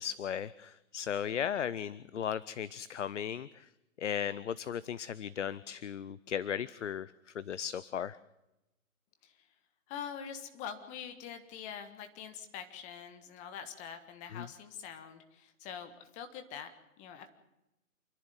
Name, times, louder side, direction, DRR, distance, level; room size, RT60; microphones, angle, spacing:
voice 1, 0.0-3.7 4.0-8.2 14.3-14.5, left 8 dB, 55° left, 18 dB, 0.7 m, -36 dB
voice 2, 9.9-16.7 17.0-17.3, left 8 dB, 15° left, 8 dB, 1.6 m, -44 dB
28.5 x 10.5 x 9.6 m, 0.95 s
figure-of-eight pair, 145°, 43 cm